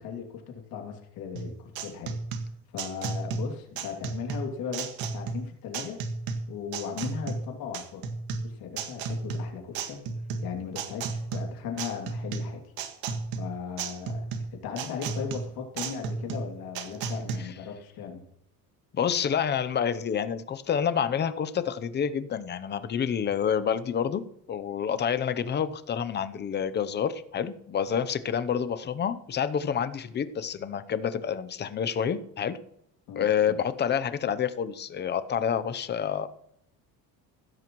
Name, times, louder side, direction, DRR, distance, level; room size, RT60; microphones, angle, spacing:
voice 1, 0.0-2.2 2.7-6.0 6.5-8.1 8.4-10.0 10.4-12.7 13.4-18.2 33.1-33.5, left 7 dB, 75° left, 1 dB, 2.8 m, -37 dB
sound 1, 1.4-17.4, right 4 dB, 75° right, 1.8 m, -33 dB
voice 2, 18.9-24.2 24.5-32.6 33.2-36.3, left 8 dB, 30° left, 12 dB, 0.7 m, -28 dB
16.0 x 13.5 x 3.1 m, 0.76 s
cardioid pair, 160°, 36 cm